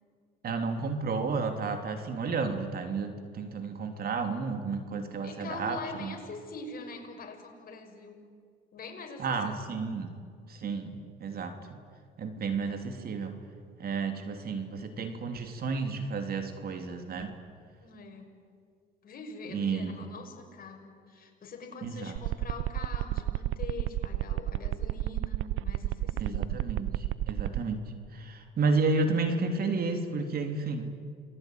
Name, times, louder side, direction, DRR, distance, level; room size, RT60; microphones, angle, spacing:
voice 1, 0.4-6.1 9.2-10.1 10.5-11.6 12.2-13.4 13.8-17.4 19.5-20.0 21.8-22.1 26.2-31.0, right 4 dB, 50° right, 6 dB, 3.2 m, -32 dB
voice 2, 5.2-8.3 8.7-9.7 17.8-18.4 19.0-26.7, left 3 dB, 50° left, 3 dB, 6.4 m, -44 dB
sound 1, 22.2-27.6, right 15 dB, 75° right, 0.8 m, -30 dB
28.5 x 21.0 x 9.4 m, 2.2 s
supercardioid pair, 80°, 20 cm